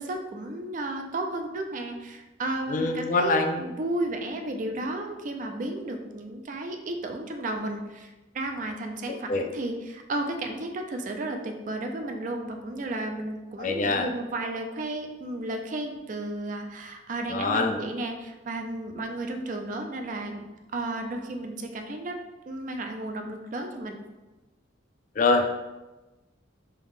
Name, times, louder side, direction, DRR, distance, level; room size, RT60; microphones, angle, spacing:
voice 1, 0.0-20.4 20.7-22.2 22.5-24.0, right 2 dB, 45° right, 4 dB, 0.4 m, -33 dB
voice 2, 2.7-3.7 9.1-9.4 13.6-14.1 17.3-17.8 25.2-25.5, left 3 dB, 45° left, 5 dB, 0.3 m, -24 dB
3.5 x 2.8 x 3.1 m, 1.1 s
head